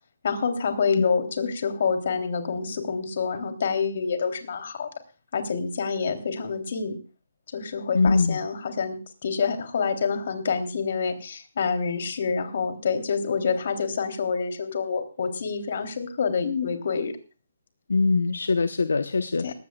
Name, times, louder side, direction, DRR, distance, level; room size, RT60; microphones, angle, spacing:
voice 1, 0.2-4.9 5.3-7.0 7.5-17.1 19.4-19.5, left 5 dB, 55° left, 7 dB, 3.4 m, -27 dB
voice 2, 7.9-8.4 17.9-19.5, left 4 dB, 80° left, 11 dB, 1.0 m, -22 dB
19.0 x 16.0 x 2.4 m, 0.35 s
hypercardioid pair, 150°, 0 cm